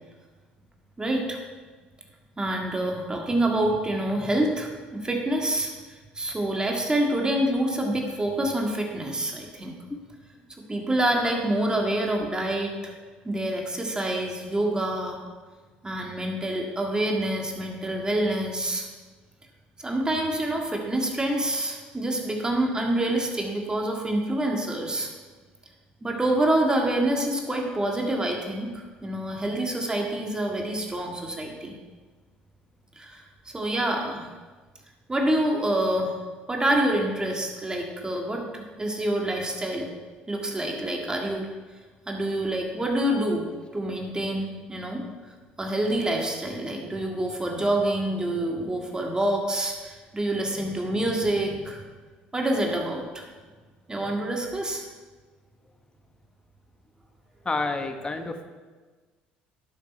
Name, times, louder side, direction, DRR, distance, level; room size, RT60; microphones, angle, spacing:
voice 1, 1.0-1.4 2.4-5.7 6.2-9.8 10.7-12.9 13.2-15.2 15.8-18.9 19.8-25.1 26.0-31.8 33.0-34.3 35.1-36.1 36.5-39.9 40.3-41.5 42.1-43.5 43.7-45.0 45.6-51.8 52.3-53.3 53.9-54.8, right 1 dB, 20° right, 1 dB, 1.8 m, -27 dB
voice 2, 57.4-58.4, left 3 dB, 20° left, 7 dB, 1.1 m, -29 dB
11.5 x 6.9 x 4.5 m, 1.4 s
hypercardioid pair, 70°, 4 cm